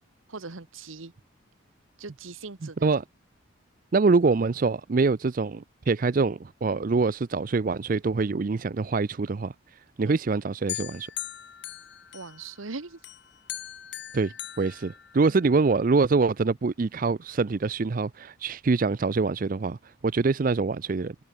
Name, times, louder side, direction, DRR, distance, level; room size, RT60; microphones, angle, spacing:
voice 1, 0.3-1.1 2.0-2.9 10.1-10.2 12.1-13.0, right 3 dB, 85° right, 1.4 m, -40 dB
voice 2, 2.6-3.0 3.9-9.5 10.0-11.1 14.1-21.2, right 4 dB, 45° right, 0.4 m, -25 dB
sound 1, 10.7-12.6 13.0-15.6, left 13 dB, 55° left, 1.6 m, -39 dB
head